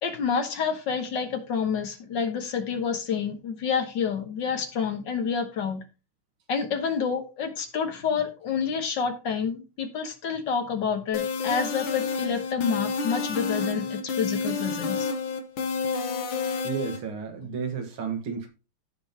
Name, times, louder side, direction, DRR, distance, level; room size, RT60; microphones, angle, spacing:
voice 1, 0.0-5.8 6.5-15.1, left 6 dB, 60° left, 6 dB, 1.8 m, -28 dB
sound 1, 11.1-17.0, left 4 dB, 80° left, 2.1 m, -29 dB
voice 2, 16.6-18.5, right 5 dB, 75° right, 5 dB, 2.4 m, -32 dB
15.0 x 5.2 x 2.9 m, 0.31 s
omnidirectional pair, 2.3 m